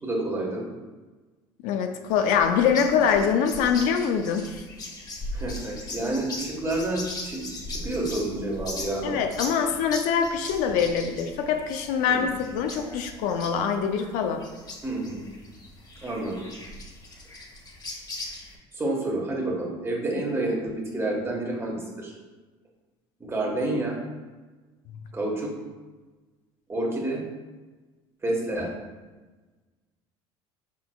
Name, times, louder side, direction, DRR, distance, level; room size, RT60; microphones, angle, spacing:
voice 1, 0.0-0.6 5.3-9.2 12.1-12.2 14.8-15.2 16.0-16.4 18.2-18.4 18.7-22.1 23.2-24.0 25.1-25.5 26.7-27.2 28.2-28.7, right 2 dB, 20° right, -2 dB, 1.3 m, -29 dB
voice 2, 1.6-4.6 9.0-14.4, left 7 dB, 70° left, 6 dB, 0.5 m, -24 dB
sound 1, 2.1-18.6, left 2 dB, 30° left, 1.0 m, -39 dB
6.1 x 3.7 x 2.3 m, 1.3 s
supercardioid pair, 85°, 14 cm